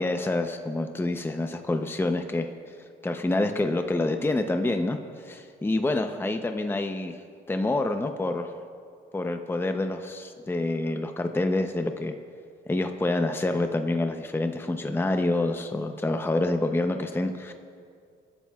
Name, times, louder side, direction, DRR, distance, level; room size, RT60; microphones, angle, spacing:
voice 1, 0.0-2.5 3.0-7.2 7.5-8.5 9.1-12.1 12.7-17.5, left 2 dB, 10° left, 6 dB, 0.7 m, -27 dB
24.0 x 12.0 x 2.4 m, 2.3 s
cardioid pair, 90°, 20 cm